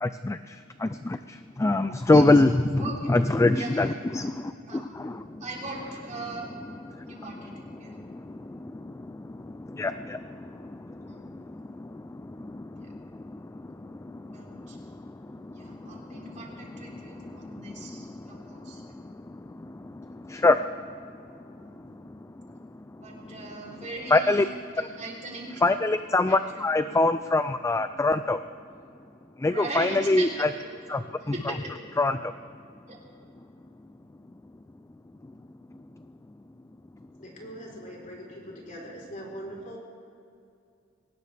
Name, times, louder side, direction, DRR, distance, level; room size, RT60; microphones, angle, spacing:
voice 1, 0.0-5.4 6.9-7.2 7.8-16.3 16.9-20.9 21.6-22.2 22.5-22.6 23.0-23.1 24.1-24.5 24.8-24.9 25.6-28.4 29.4-30.5 30.9-31.3 32.0-32.3, left 2 dB, 15° left, 11 dB, 0.3 m, -27 dB
voice 2, 2.1-2.4 2.8-3.2 3.5-4.0 4.7-5.1 5.4-6.5 7.0-8.0 11.0-11.6 12.8-12.9 14.2-14.8 15.5-18.9 21.6-21.8 23.0-24.5 24.7-25.6 26.2-26.6 29.4-30.5 31.2-31.7 32.9-33.0, right 2 dB, 35° right, -2 dB, 3.3 m, -39 dB
voice 3, 37.2-39.8, equal, 40° left, -2 dB, 3.8 m, -41 dB
23.0 x 18.5 x 3.4 m, 2.5 s
head